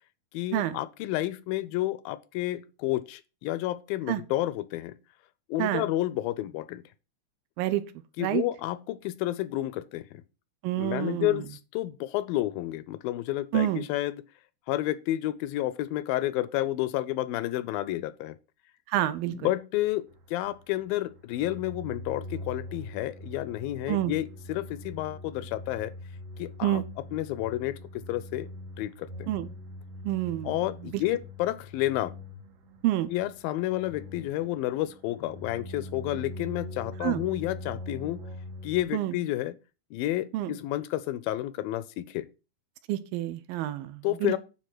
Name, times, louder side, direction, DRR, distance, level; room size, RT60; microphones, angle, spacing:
voice 1, 0.3-5.0 5.5-6.8 8.2-10.2 10.8-14.2 14.7-18.4 19.4-25.9 26.4-26.8 27.1-28.5 28.8-29.3 30.4-32.1 33.1-38.2 38.6-39.6 39.9-42.3 44.0-44.4, left 15 dB, 80° left, 2.2 m, -30 dB
voice 2, 10.6-11.5 13.5-13.9 18.9-19.5 23.9-24.1 26.6-26.8 29.3-29.5 30.0-30.6 30.9-31.0 32.8-33.1 37.0-37.2 38.9-39.1 40.3-40.5 42.9-44.4, right 14 dB, 80° right, 2.4 m, -28 dB
sound 1, 20.1-38.8, left 1 dB, 55° right, 1.8 m, -43 dB
9.6 x 3.9 x 6.1 m
omnidirectional pair, 4.2 m